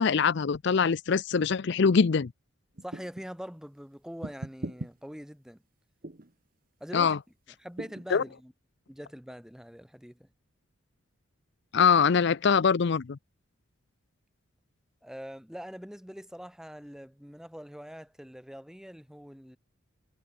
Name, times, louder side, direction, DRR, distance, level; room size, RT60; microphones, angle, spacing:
voice 1, 0.0-2.3 6.9-7.2 8.1-8.2 11.7-13.2, left 6 dB, 55° left, 0.5 m, -23 dB
voice 2, 2.8-5.6 6.8-7.2 7.6-8.5 8.9-10.3 15.0-19.6, equal, 5° right, 1.9 m, -43 dB
sound 1, 2.8-3.3 4.2-4.9 6.0-6.3 7.8-8.1, right 1 dB, 40° right, 1.2 m, -39 dB
head